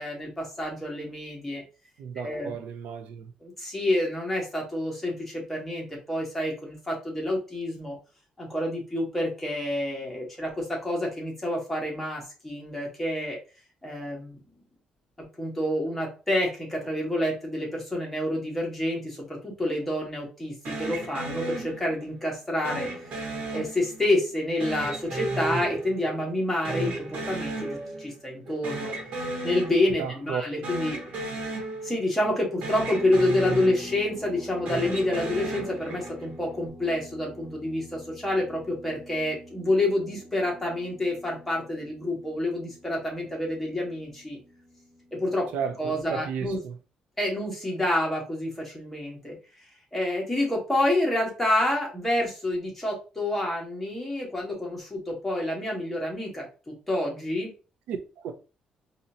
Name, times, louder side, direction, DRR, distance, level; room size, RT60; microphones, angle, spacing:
voice 1, 0.0-1.6 2.2-2.5 3.4-8.0 8.4-13.4 13.8-14.4 15.2-23.2 23.5-28.9 29.4-31.0 31.8-44.4 45.1-45.5 45.8-46.6 47.2-49.3 49.9-57.5, left 1 dB, 10° left, 1.6 m, -28 dB
voice 2, 2.0-3.3 30.0-30.4 45.5-46.8 57.9-58.3, right 7 dB, 90° right, 0.5 m, -33 dB
sound 1, 20.6-22.2 22.6-24.2 24.6-26.4 26.6-28.2 28.4-30.2 30.6-32.4 32.6-34.2 34.6-36.3, right 2 dB, 70° right, 1.5 m, -34 dB
sound 2, 32.9-46.0, equal, 25° right, 0.7 m, -46 dB
4.1 x 2.7 x 2.8 m
cardioid pair, 130°, 2 cm